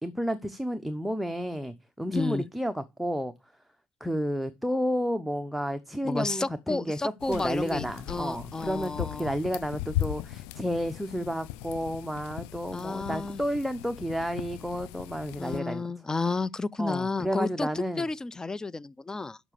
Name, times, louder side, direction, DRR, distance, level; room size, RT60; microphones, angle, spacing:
voice 1, 0.0-3.3 4.0-7.0 7.2-15.9 16.8-18.1, equal, ahead, 0.9 m, -31 dB
voice 2, 2.1-2.4 6.0-9.4 12.7-13.4 15.4-19.4, left 3 dB, 20° left, 0.5 m, -32 dB
sound 1, 7.2-15.6, left 13 dB, 80° left, 0.4 m, -38 dB
7.2 x 6.0 x 6.8 m
hypercardioid pair, 60°, 3 cm